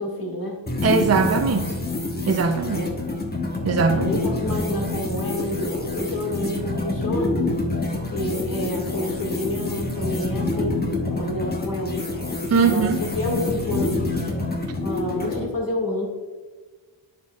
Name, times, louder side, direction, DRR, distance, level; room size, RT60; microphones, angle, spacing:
voice 1, 0.0-0.7 2.7-3.0 3.9-7.4 7.9-10.8 11.1-12.0 12.6-14.3 14.8-16.1, left 1 dB, 45° left, 0 dB, 2.1 m, -29 dB
sound 1, 0.7-15.5, left 2 dB, 20° left, 1.2 m, -27 dB
voice 2, 0.8-1.8 2.3-2.9 3.6-4.1 12.5-13.0, right 5 dB, 35° right, 6 dB, 0.5 m, -20 dB
9.3 x 5.9 x 2.4 m, 1.3 s
cardioid pair, 65°, 45 cm